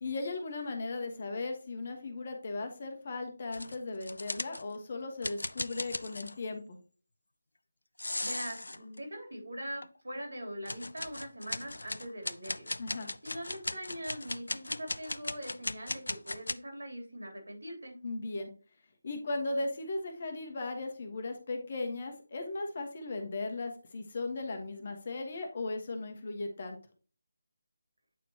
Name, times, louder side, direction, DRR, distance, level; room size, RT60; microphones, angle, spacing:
voice 1, 0.0-6.8 12.8-13.1 18.0-18.5 19.0-26.8, left 2 dB, 40° left, 4 dB, 1.5 m, -37 dB
sound 1, 3.5-4.8 5.2-6.4 8.0-9.0 9.8-9.9 10.7-16.5, left 2 dB, 65° left, 0.4 m, -37 dB
voice 2, 8.2-12.7 13.2-17.9, equal, 70° right, 1 dB, 3.2 m, -42 dB
9.0 x 4.4 x 2.9 m, 0.37 s
figure-of-eight pair, 155°, 0 cm